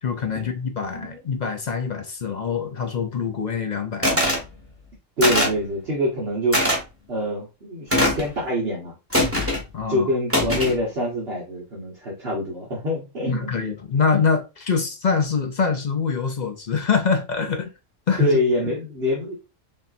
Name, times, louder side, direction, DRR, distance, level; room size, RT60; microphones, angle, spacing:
voice 1, 0.0-4.2 9.7-10.1 13.3-17.7 18.1-18.4, left 5 dB, 45° left, 0.6 m, -24 dB
voice 2, 0.8-1.2 4.1-4.2 5.2-6.6 7.1-8.9 9.9-13.7 18.2-19.3, equal, 50° right, 1.3 m, -25 dB
sound 1, 4.0-4.4 5.2-5.6 6.5-6.8 7.9-8.3 9.1-9.6 10.3-10.8, left 1 dB, 10° right, 1.5 m, -21 dB
5.5 x 2.7 x 2.5 m
omnidirectional pair, 1.3 m